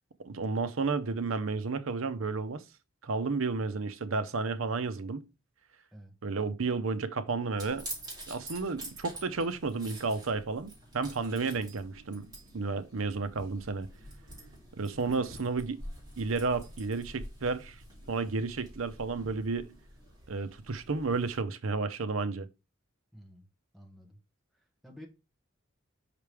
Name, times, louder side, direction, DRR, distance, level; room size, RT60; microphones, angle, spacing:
voice 1, 0.2-2.6 3.0-5.3 6.2-7.9 8.3-12.3 12.5-13.9 14.8-15.8 16.2-17.8 18.1-19.7 20.3-22.5, right 4 dB, 85° right, 0.7 m, -32 dB
sound 1, 7.6-21.4, right 1 dB, 20° right, 3.6 m, -47 dB
voice 2, 15.1-15.4 23.1-23.5 23.7-24.2 24.5-25.1, equal, ahead, 1.4 m, -51 dB
5.8 x 5.0 x 3.4 m
head